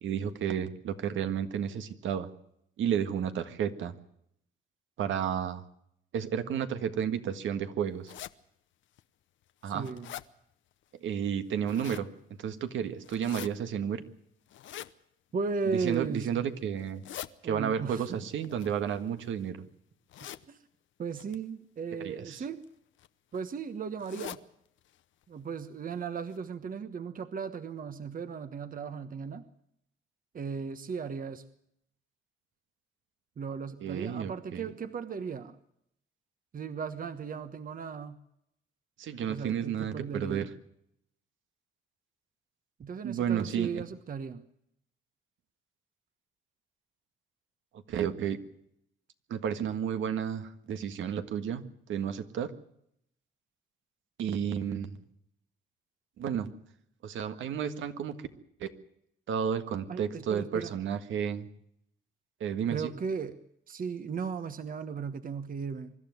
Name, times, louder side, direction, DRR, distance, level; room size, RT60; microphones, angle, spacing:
voice 1, 0.0-2.3 2.8-3.9 5.0-5.6 6.1-8.1 9.6-9.9 11.0-12.1 12.4-14.0 15.6-17.0 17.4-19.6 22.0-22.4 33.8-34.7 39.0-40.5 43.0-43.8 47.9-48.4 49.3-52.5 54.2-55.0 56.2-56.5 57.0-58.1 58.6-58.7 59.3-61.5 62.4-62.9, right 8 dB, 75° right, 9 dB, 1.7 m, -32 dB
sound 1, 8.0-8.3 9.0-9.1 9.5-10.3 11.4-12.1 13.0-13.5 14.5-14.9 15.7-16.1 16.8-17.3 18.4-19.4 20.1-20.4 21.1-21.4 22.4-22.6 23.0-23.1 23.3-23.4 24.0-24.4 24.8-25.0 25.2-25.3 25.9-26.0 26.3-26.4, left 12 dB, 75° left, 0.9 m, -44 dB
voice 2, 9.7-10.1 15.3-16.5 17.4-18.2 20.5-20.6 21.0-22.6 23.3-24.4 25.3-29.5 30.3-31.4 33.4-35.6 36.5-38.2 39.3-40.5 42.8-44.4 59.9-60.8 62.7-63.3 63.7-65.9, right 5 dB, 45° right, 10 dB, 1.3 m, -36 dB
24.5 x 12.5 x 9.4 m, 0.76 s
cardioid pair, 90°, 20 cm